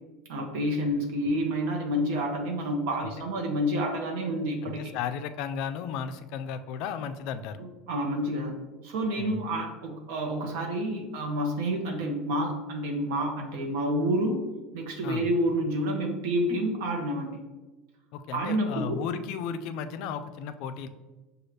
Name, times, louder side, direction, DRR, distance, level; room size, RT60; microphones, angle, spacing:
voice 1, 0.3-4.8 7.6-8.5 8.8-14.4 14.7-17.4 18.3-19.0, equal, 70° right, 2 dB, 0.8 m, -29 dB
voice 2, 4.6-7.6 9.2-9.5 15.0-15.3 18.1-20.9, left 7 dB, 60° left, 10 dB, 0.3 m, -34 dB
6.3 x 2.3 x 3.2 m, 1.2 s
supercardioid pair, 145°, 0 cm